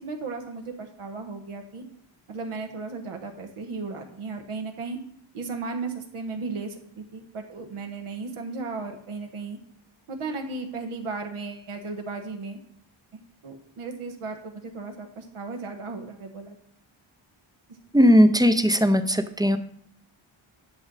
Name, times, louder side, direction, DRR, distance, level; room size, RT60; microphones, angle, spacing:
voice 1, 0.0-1.8 2.3-5.0 5.3-9.6 10.1-12.6 13.1-16.6 17.7-17.8, right 4 dB, 85° right, 4 dB, 1.3 m, -35 dB
voice 2, 17.9-19.6, equal, 10° right, 10 dB, 0.5 m, -18 dB
10.5 x 6.2 x 4.1 m, 0.68 s
wide cardioid pair, 105°, 49 cm